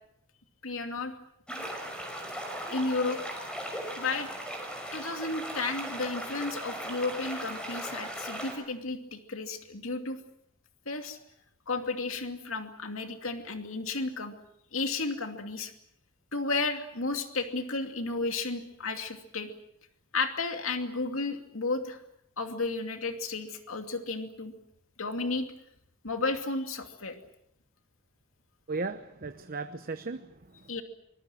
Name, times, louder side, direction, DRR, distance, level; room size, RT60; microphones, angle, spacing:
voice 1, 0.6-1.1 2.7-3.2 4.0-4.3 4.9-10.2 10.9-11.2 11.7-14.3 14.7-15.7 16.3-19.5 20.1-22.0 22.4-24.5 25.0-25.4 26.0-27.1 30.7-30.8, left 3 dB, 70° left, 6 dB, 2.6 m, -33 dB
sound 1, 1.5-8.5, equal, 5° left, 5.7 m, -38 dB
voice 2, 28.7-30.7, right 3 dB, 45° right, 9 dB, 1.0 m, -36 dB
24.5 x 21.5 x 7.7 m, 0.77 s
head